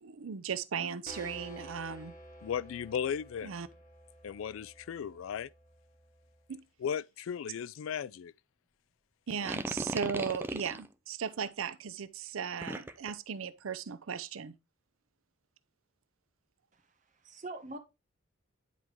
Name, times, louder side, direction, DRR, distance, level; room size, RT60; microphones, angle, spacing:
voice 1, 0.0-2.1 3.4-3.7 6.5-6.6 9.3-14.5, right 7 dB, 90° right, 0.6 m, -37 dB
sound 1, 1.1-6.5, equal, 40° left, 1.6 m, -52 dB
voice 2, 2.4-3.5 4.2-5.5 6.8-8.3, left 8 dB, 80° left, 0.3 m, -36 dB
sound 2, 9.3-10.9 12.6-13.1, right 1 dB, 10° right, 0.6 m, -36 dB
voice 3, 16.7-17.8, right 2 dB, 40° right, 1.5 m, -45 dB
10.0 x 4.6 x 3.5 m
head